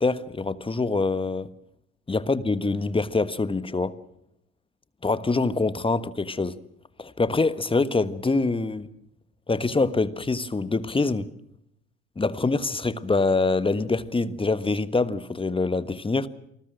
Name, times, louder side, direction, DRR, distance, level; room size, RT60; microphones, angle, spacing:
voice 1, 0.0-1.5 2.1-3.9 5.0-6.6 7.0-8.9 9.5-11.3 12.2-16.3, left 3 dB, 15° left, 15 dB, 1.4 m, -25 dB
28.0 x 20.5 x 6.4 m, 0.77 s
figure-of-eight pair, 55°, 35 cm